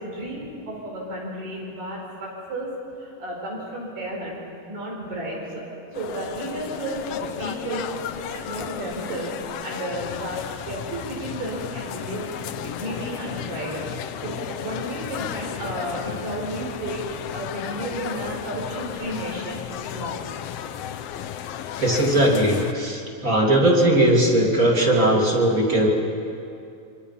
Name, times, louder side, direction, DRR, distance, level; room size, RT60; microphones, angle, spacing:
voice 1, 0.0-4.4 4.7-7.9 8.2-13.9 14.2-17.0 17.3-20.2, right 1 dB, 80° right, -2 dB, 6.9 m, -33 dB
sound 1, 5.9-22.7, left 10 dB, 85° left, 1.3 m, -34 dB
voice 2, 21.8-25.9, right 1 dB, 25° right, -2 dB, 2.8 m, -19 dB
26.5 x 24.5 x 5.6 m, 2.5 s
omnidirectional pair, 3.8 m